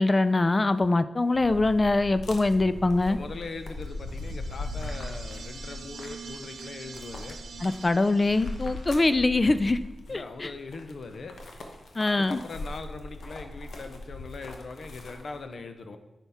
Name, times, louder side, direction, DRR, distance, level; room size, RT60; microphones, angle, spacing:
voice 1, 0.0-3.2 7.6-9.8 10.1-10.5 12.0-12.4, left 2 dB, 35° left, 13 dB, 0.3 m, -23 dB
sound 1, 1.3-15.4, left 2 dB, 85° left, 1.0 m, -40 dB
voice 2, 3.1-7.4 10.1-11.4 12.1-16.0, left 3 dB, 70° left, 8 dB, 0.7 m, -40 dB
sound 2, 3.7-9.1, right 5 dB, 70° right, 0.6 m, -45 dB
9.7 x 5.8 x 3.5 m, 1.0 s
cardioid pair, 70°, 0 cm